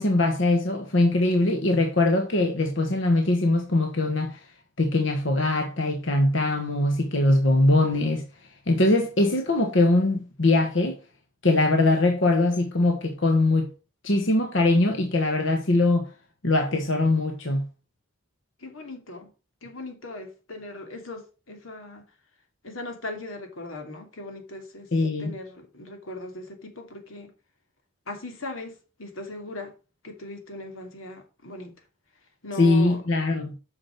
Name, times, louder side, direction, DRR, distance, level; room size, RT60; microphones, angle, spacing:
voice 1, 0.0-4.5 4.8-8.2 8.7-11.0 11.4-13.7 14.0-16.1 16.4-17.7 24.9-25.3 32.6-33.5, left 2 dB, 65° left, 1.3 m, -22 dB
voice 2, 18.6-19.3 19.6-22.0 22.6-24.9 25.2-27.3 28.1-28.7 29.0-29.7 30.0-31.7 32.4-33.0, left 2 dB, 90° left, 2.6 m, -39 dB
8.6 x 6.0 x 5.8 m
head